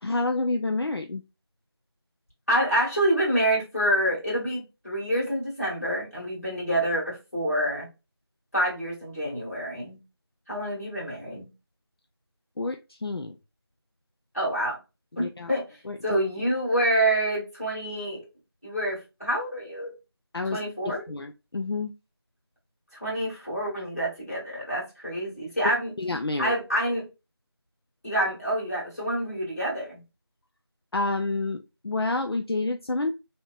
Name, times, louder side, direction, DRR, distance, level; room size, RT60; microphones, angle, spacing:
voice 1, 0.0-1.2 12.6-13.4 15.2-15.5 15.8-16.0 20.3-20.6 20.8-21.9 26.0-26.5 30.9-33.1, left 2 dB, 65° left, 6 dB, 0.4 m, -29 dB
voice 2, 2.5-7.9 8.5-10.0 10.5-11.5 14.3-14.8 15.2-15.6 16.0-18.2 18.6-19.9 20.5-21.1 22.9-25.9 26.4-27.1 28.0-30.0, right 1 dB, 35° left, -6 dB, 1.9 m, -27 dB
3.2 x 2.8 x 2.4 m, 0.27 s
figure-of-eight pair, 180°, 14 cm